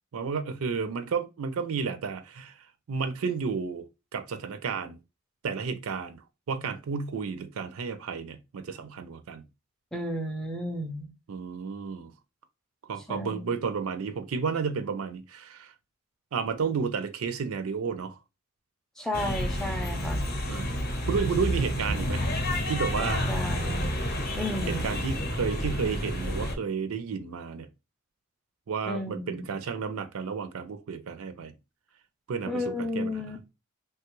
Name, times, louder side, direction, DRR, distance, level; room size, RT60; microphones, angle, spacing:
voice 1, 0.1-2.6 2.9-3.9 4.1-5.0 5.4-6.2 6.5-9.5 11.3-12.1 12.9-15.7 16.3-18.1 20.5-20.7 21.1-22.2 22.7-23.2 24.7-27.7 28.7-31.5 32.3-33.3, right 5 dB, 80° right, 0.4 m, -32 dB
voice 2, 9.9-11.1 13.1-13.5 19.0-20.2 23.0-23.9 24.4-24.9 28.9-29.5 32.5-33.4, left 1 dB, ahead, 0.3 m, -33 dB
sound 1, 19.1-26.5, equal, 45° left, 0.6 m, -29 dB
3.2 x 2.3 x 2.9 m
head